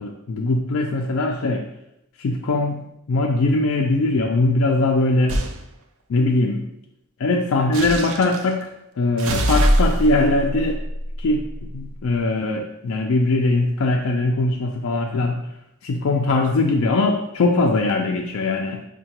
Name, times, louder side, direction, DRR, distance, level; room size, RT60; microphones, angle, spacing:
voice 1, 0.0-1.7 2.2-5.4 6.1-6.6 7.2-8.7 9.0-10.8 11.2-11.5 11.7-15.5 15.8-18.8, left 2 dB, 65° left, 1 dB, 0.3 m, -21 dB
sound 1, 5.3-5.6 7.7-8.5 9.2-11.8, equal, 70° right, 0.4 m, -23 dB
5.4 x 2.2 x 2.9 m, 0.84 s
head